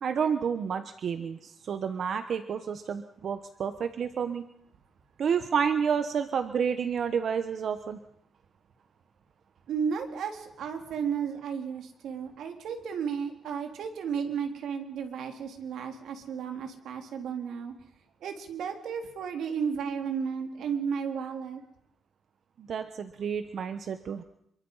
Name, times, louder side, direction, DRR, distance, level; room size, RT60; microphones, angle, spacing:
voice 1, 0.0-4.5 5.2-8.0 22.6-24.2, right 7 dB, 55° right, 9 dB, 1.1 m, -30 dB
voice 2, 9.7-17.7 18.2-21.6, right 7 dB, 80° right, 4 dB, 3.8 m, -33 dB
28.0 x 23.0 x 5.7 m, 0.75 s
cardioid pair, 150°, 0 cm